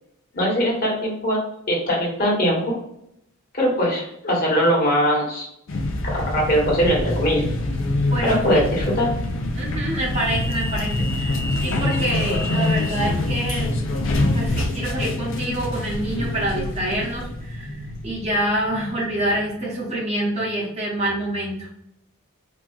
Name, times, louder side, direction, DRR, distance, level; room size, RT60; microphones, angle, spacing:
voice 1, 0.3-1.4 1.7-2.8 3.5-5.5 6.0-7.4 8.2-9.1, equal, 45° left, -3 dB, 1.2 m, -21 dB
sound 1, 5.7-19.6, left 2 dB, 65° left, 0.5 m, -25 dB
voice 2, 8.1-8.6 9.3-14.0 14.3-21.7, right 1 dB, 30° right, -4 dB, 0.9 m, -27 dB
4.1 x 2.3 x 2.3 m, 0.77 s
head